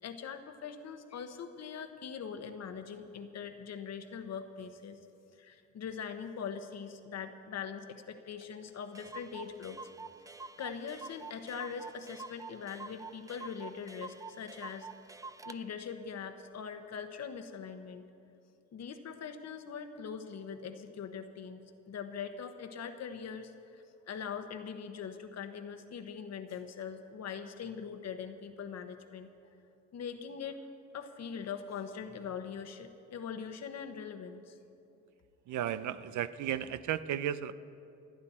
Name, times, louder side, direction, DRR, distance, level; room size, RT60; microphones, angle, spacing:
voice 1, 0.0-5.0 5.4-9.8 10.6-15.1 15.4-18.1 18.7-29.3 29.9-30.6 30.9-34.6, left 6 dB, 60° left, 8 dB, 1.2 m, -42 dB
Clock, 8.4-8.5 8.7-8.8 8.9-15.6, right 4 dB, 10° right, 0.4 m, -47 dB
voice 2, 35.5-37.5, right 10 dB, 75° right, 14 dB, 0.6 m, -34 dB
27.5 x 9.6 x 4.3 m, 2.7 s
cardioid pair, 90°, 30 cm